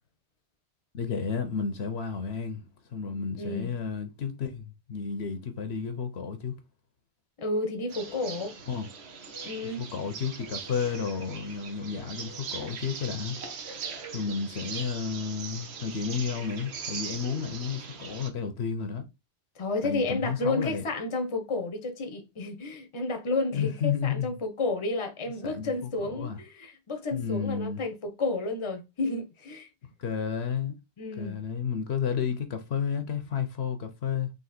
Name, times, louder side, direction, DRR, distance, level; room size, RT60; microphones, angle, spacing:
voice 1, 0.9-2.6 2.9-6.5 8.7-8.9 9.6-13.4 14.1-19.0 19.8-20.8 23.5-24.4 25.4-26.4 27.1-27.8 30.0-30.8 31.2-34.3, left 6 dB, 70° left, 1.0 m, -32 dB
voice 2, 3.4-3.7 7.4-8.5 9.4-9.8 19.6-29.7 31.0-31.4, left 2 dB, 30° left, 0.8 m, -31 dB
sound 1, 7.9-18.3, right 5 dB, 70° right, 1.1 m, -40 dB
3.9 x 2.8 x 4.2 m
omnidirectional pair, 1.1 m